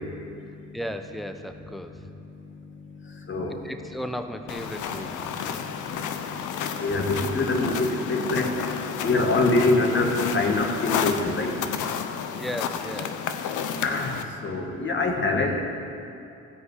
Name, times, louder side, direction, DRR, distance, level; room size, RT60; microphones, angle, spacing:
voice 1, 0.7-2.0 3.5-5.7 12.4-13.2, equal, ahead, 7 dB, 0.7 m, -35 dB
voice 2, 3.3-3.6 5.8-11.5 13.8-14.1 14.4-15.6, left 2 dB, 40° left, 3 dB, 1.6 m, -25 dB
sound 1, 4.5-14.2, left 7 dB, 80° left, 0.8 m, -31 dB
15.5 x 5.2 x 8.1 m, 2.6 s
cardioid pair, 90°, 30 cm